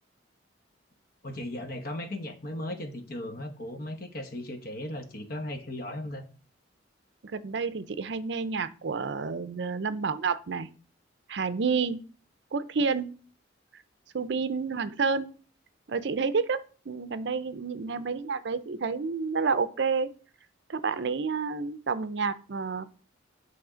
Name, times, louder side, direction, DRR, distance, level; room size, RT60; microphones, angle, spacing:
voice 1, 1.2-6.2, left 1 dB, 50° left, 7 dB, 1.0 m, -37 dB
voice 2, 7.2-10.7 11.3-12.0 12.5-13.1 14.1-15.3 15.9-16.6 16.9-20.1 20.7-22.8, right 5 dB, 60° right, 14 dB, 0.5 m, -29 dB
8.7 x 3.4 x 5.0 m, 0.38 s
head